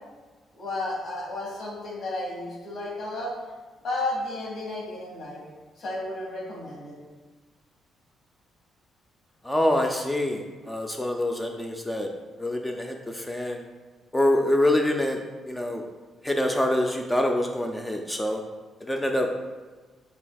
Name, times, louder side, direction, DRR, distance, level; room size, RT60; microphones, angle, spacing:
voice 1, 0.5-3.3 3.8-5.4 5.8-7.0, left 2 dB, 60° left, -4 dB, 1.4 m, -32 dB
voice 2, 9.4-12.1 12.4-13.6 14.1-15.2 15.5-15.8 16.2-18.4 18.8-19.4, left 1 dB, 10° left, 2 dB, 0.3 m, -25 dB
6.6 x 2.6 x 2.3 m, 1.3 s
cardioid pair, 90°, 0 cm